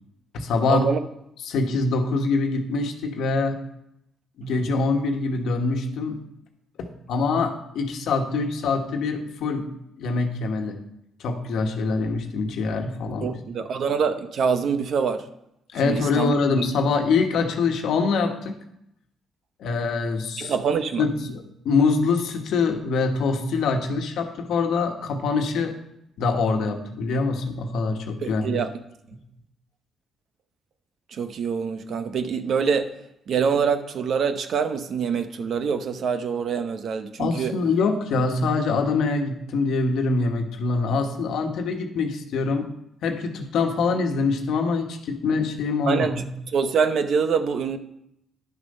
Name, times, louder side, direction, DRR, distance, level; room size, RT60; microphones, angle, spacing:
voice 1, 0.3-0.9 1.4-3.6 4.4-6.2 6.8-9.7 10.0-10.8 11.2-13.4 15.7-18.6 19.6-20.5 21.0-25.7 26.2-28.6 37.2-42.7 43.0-46.3, left 4 dB, 75° left, 1.3 m, -24 dB
voice 2, 13.2-15.3 15.8-16.3 20.4-21.0 28.2-28.7 31.1-32.9 33.3-37.5 45.9-46.2 46.5-47.8, right 6 dB, 60° right, 0.8 m, -25 dB
10.5 x 6.7 x 5.4 m
cardioid pair, 90°, 0 cm